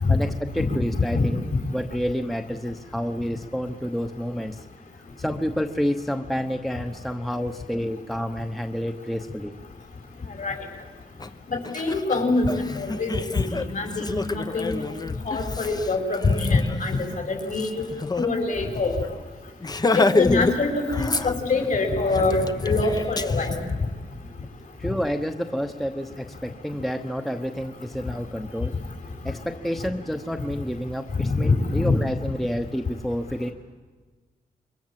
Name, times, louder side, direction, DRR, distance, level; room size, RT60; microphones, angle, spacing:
voice 1, 0.1-4.6 5.2-9.5 24.8-28.7 29.2-33.5, equal, ahead, 6 dB, 1.1 m, -29 dB
Laughter, 11.2-11.3 11.6-18.3 18.6-18.7 19.0-19.2 19.6-20.6 20.9-21.7 22.1-23.6, left 3 dB, 25° left, 0.9 m, -28 dB
voice 2, 11.5-14.8 15.2-17.0 17.3-17.8 18.2-18.9 19.9-23.5 31.2-32.0, left 3 dB, 55° left, 3 dB, 5.6 m, -24 dB
27.0 x 23.0 x 7.7 m, 1.3 s
wide cardioid pair, 130°, 16 cm